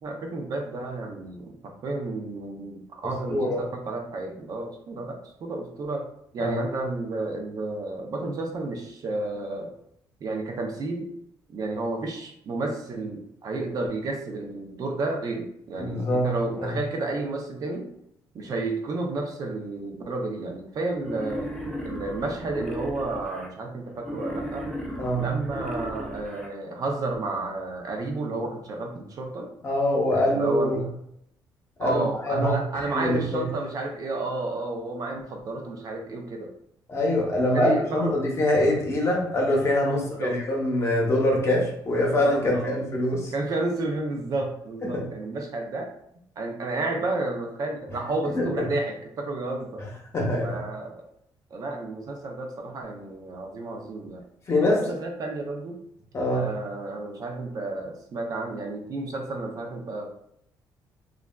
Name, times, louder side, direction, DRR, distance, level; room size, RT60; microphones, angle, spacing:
voice 1, 0.0-6.1 6.3-9.7 10.2-11.1 11.5-17.9 18.3-21.5 21.8-24.7 25.1-29.5 30.1-30.9 31.8-36.5 37.5-38.2 39.9-40.4 41.9-42.8 43.3-45.9 46.4-49.8 50.4-51.1 51.5-54.2 54.6-55.8 56.3-60.1, right 2 dB, 50° right, 2 dB, 0.5 m, -31 dB
voice 2, 3.3-3.6 6.4-6.6 15.8-16.3 16.6-16.8 25.0-25.3 29.6-30.8 31.8-33.5 36.9-43.3 44.9-45.0 48.3-48.7 49.8-49.9 50.1-50.6 54.5-54.8 56.1-56.5, left 1 dB, 35° left, -1 dB, 0.8 m, -24 dB
Wild animals, 21.0-23.5 24.0-26.5, equal, 5° left, 0.4 m, -35 dB
3.3 x 2.3 x 2.2 m, 0.73 s
cardioid pair, 135°, 8 cm